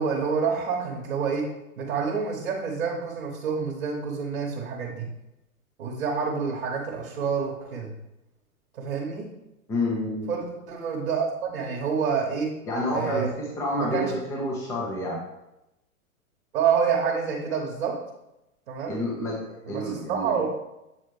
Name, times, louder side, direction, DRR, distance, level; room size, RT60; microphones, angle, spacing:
voice 1, 0.0-1.5 1.8-5.1 5.8-7.9 8.7-9.3 10.3-12.5 12.9-13.3 13.7-14.1 16.5-18.0 18.7-18.9 19.6-20.5, right 6 dB, 40° right, -1 dB, 1.2 m, -28 dB
voice 2, 9.7-10.3 12.7-15.2 18.9-20.4, left 1 dB, 5° left, -2 dB, 0.6 m, -29 dB
7.3 x 4.1 x 3.2 m, 0.91 s
figure-of-eight pair, 110°, 43 cm